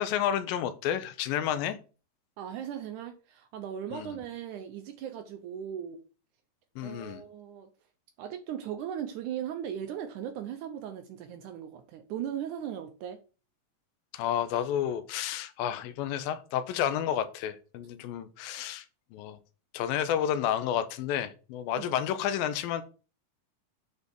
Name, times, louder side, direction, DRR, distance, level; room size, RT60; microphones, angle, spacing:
voice 1, 0.0-1.8 3.9-4.2 6.8-7.2 14.1-18.9 19.1-19.4 19.7-22.8, left 10 dB, 85° left, 2.4 m, -30 dB
voice 2, 2.4-6.0 6.8-7.7 8.2-13.2 21.8-21.9, right 9 dB, 80° right, 1.9 m, -38 dB
8.1 x 4.0 x 3.5 m
omnidirectional pair, 4.0 m